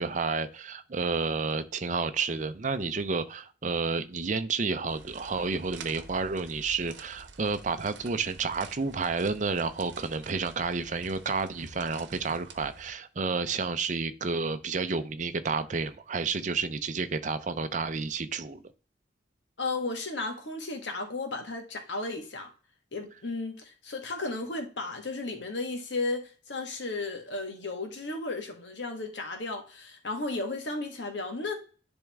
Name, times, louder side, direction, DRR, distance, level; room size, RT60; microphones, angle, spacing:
voice 1, 0.0-18.6, right 4 dB, 45° right, 0.6 m, -30 dB
sound 1, 4.9-12.9, right 4 dB, 90° right, 0.9 m, -49 dB
voice 2, 19.6-22.5 22.9-31.5, left 3 dB, 85° left, 1.5 m, -34 dB
10.5 x 3.6 x 3.5 m
head